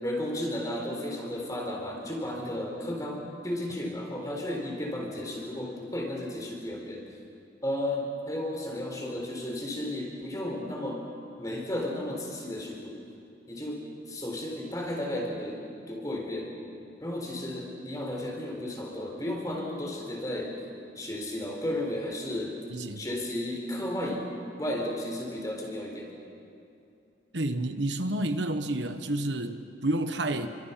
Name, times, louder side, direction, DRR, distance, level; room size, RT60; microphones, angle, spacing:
voice 1, 0.0-7.1 7.6-11.1 11.4-13.0 13.5-16.6 17.0-20.5 21.0-22.6 22.9-26.2, left 1 dB, 20° left, 0 dB, 4.1 m, -33 dB
voice 2, 22.7-23.0 27.3-30.5, right 1 dB, 85° right, 8 dB, 1.3 m, -30 dB
29.0 x 25.0 x 5.9 m, 2.6 s
head